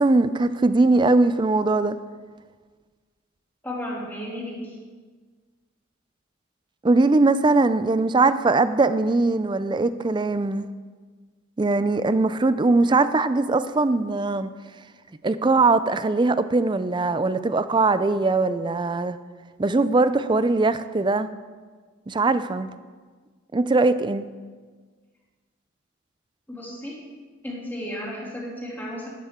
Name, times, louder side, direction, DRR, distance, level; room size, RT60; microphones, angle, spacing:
voice 1, 0.0-2.0 6.8-10.6 11.6-14.5 15.2-19.2 19.6-21.3 22.1-22.7 23.5-24.3, right 3 dB, 25° right, 13 dB, 0.4 m, -21 dB
voice 2, 3.6-4.8 26.5-27.0 27.4-29.1, equal, 10° left, -5 dB, 2.8 m, -33 dB
12.5 x 12.0 x 3.7 m, 1.5 s
head